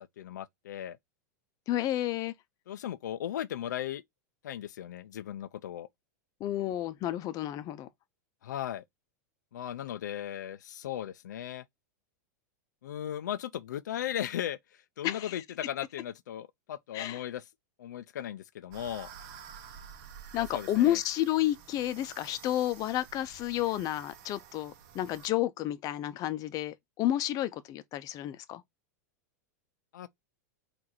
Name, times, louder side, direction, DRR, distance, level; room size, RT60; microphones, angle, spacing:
voice 1, 0.2-1.0 2.7-4.0 4.4-5.9 8.4-8.9 9.5-11.6 12.8-17.5 17.8-19.1 20.5-21.0 29.9-30.1, left 11 dB, 85° left, 0.4 m, -37 dB
voice 2, 1.7-2.3 6.4-7.9 15.0-15.4 16.9-17.2 20.3-28.6, left 13 dB, 40° left, 0.6 m, -31 dB
sound 1, 18.7-25.3, right 8 dB, 55° right, 0.9 m, -50 dB
3.8 x 2.6 x 4.3 m
hypercardioid pair, 110°, 9 cm